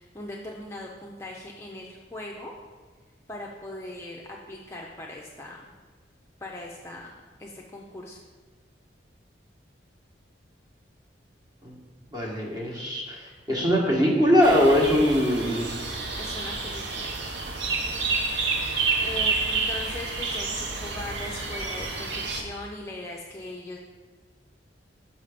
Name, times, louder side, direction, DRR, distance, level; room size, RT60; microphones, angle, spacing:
voice 1, 0.0-2.5 3.3-5.6 6.4-7.1 7.4-8.2 16.2-17.1 19.0-23.8, left 1 dB, 15° left, -2 dB, 0.5 m, -39 dB
voice 2, 12.1-15.8, equal, 20° right, -2 dB, 1.2 m, -22 dB
sound 1, 14.4-22.4, right 3 dB, 70° right, 0.8 m, -29 dB
5.8 x 5.5 x 4.9 m, 1.4 s
head